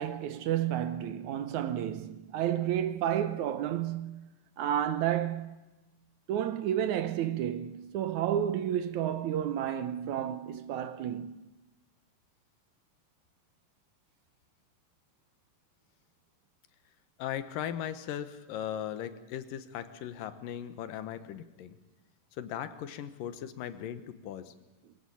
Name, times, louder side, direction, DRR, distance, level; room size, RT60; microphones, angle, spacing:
voice 1, 0.0-5.6 6.3-11.4, right 10 dB, 70° right, 2.0 m, -31 dB
voice 2, 17.2-21.8 22.4-24.5, left 10 dB, 85° left, 2.8 m, -38 dB
22.5 x 16.0 x 8.5 m
omnidirectional pair, 3.9 m